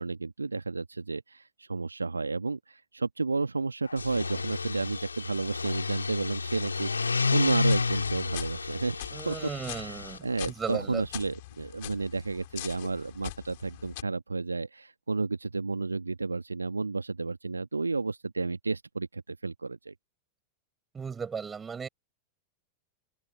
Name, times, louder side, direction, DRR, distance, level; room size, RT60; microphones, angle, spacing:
voice 1, 0.0-19.9, right 3 dB, 80° right, 1.5 m, -32 dB
sound 1, 3.9-10.2, left 4 dB, 75° left, 3.0 m, -31 dB
sound 2, 7.5-14.0, left 19 dB, 50° left, 6.3 m, -43 dB
voice 2, 9.1-11.0 20.9-21.9, right 6 dB, 20° right, 6.5 m, -36 dB
open air
figure-of-eight pair, 90°, 0 cm